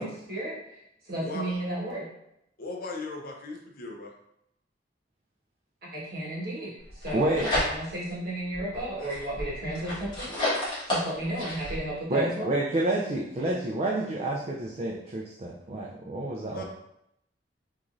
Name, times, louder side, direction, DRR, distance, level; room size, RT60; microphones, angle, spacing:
voice 1, 0.0-2.1 5.8-10.4 10.9-12.5, right 1 dB, 60° right, -5 dB, 1.3 m, -34 dB
voice 2, 1.2-1.6 2.6-4.1 16.5-16.6, left 3 dB, 55° left, 1 dB, 0.6 m, -37 dB
sound 1, 6.9-8.1 8.5-11.8, left 1 dB, 25° left, 1.4 m, -31 dB
voice 3, 7.1-7.5 12.1-16.6, right 2 dB, 35° right, -2 dB, 0.4 m, -29 dB
3.6 x 3.0 x 2.5 m, 0.80 s
head